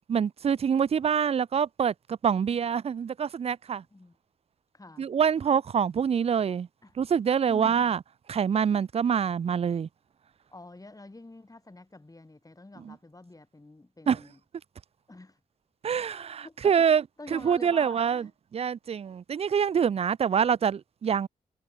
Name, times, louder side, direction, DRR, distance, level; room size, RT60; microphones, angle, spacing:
voice 1, 0.1-3.8 5.0-6.7 7.0-8.0 8.3-9.9 12.8-12.9 14.1-14.2 15.8-17.0 17.3-21.3, right 7 dB, 40° right, 0.4 m, -25 dB
voice 2, 4.7-5.1 6.8-6.9 7.5-7.8 10.5-14.4 15.1-15.4 16.4-16.9 17.2-18.3 20.3-20.5, left 2 dB, 20° left, 4.5 m, -48 dB
cardioid pair, 55°, 16 cm